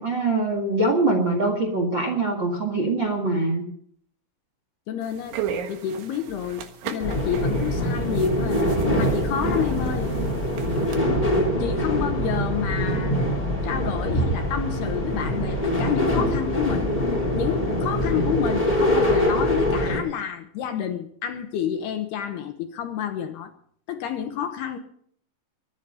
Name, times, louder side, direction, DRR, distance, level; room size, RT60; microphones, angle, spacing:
voice 1, 0.0-3.6, right 2 dB, 40° right, 3 dB, 1.6 m, -23 dB
voice 2, 4.9-5.4 5.7-8.6 8.9-10.1 11.6-13.2 13.6-16.9 17.4-23.5 23.9-24.8, left 9 dB, 70° left, 7 dB, 2.7 m, -29 dB
sound 1, 5.0-11.0, right 7 dB, 75° right, 3.8 m, -35 dB
sound 2, 7.0-20.0, equal, 10° left, 2.5 m, -24 dB
23.5 x 9.5 x 5.6 m, 0.63 s
omnidirectional pair, 5.4 m